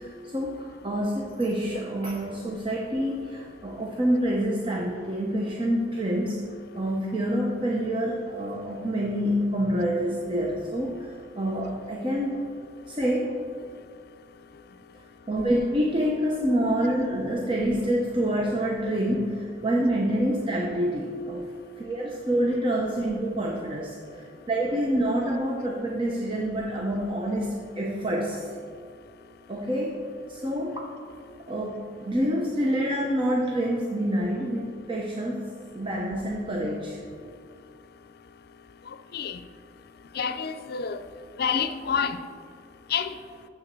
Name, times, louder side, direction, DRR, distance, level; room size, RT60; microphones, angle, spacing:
voice 1, 0.0-6.4 6.7-12.4 12.9-13.4 15.3-21.5 21.8-24.0 24.5-28.5 29.5-30.9 31.5-37.0, equal, 30° right, -1 dB, 0.8 m, -27 dB
voice 2, 40.1-41.0 41.4-42.2 42.9-43.1, left 7 dB, 60° left, 11 dB, 0.5 m, -27 dB
7.3 x 6.9 x 6.7 m, 2.2 s
head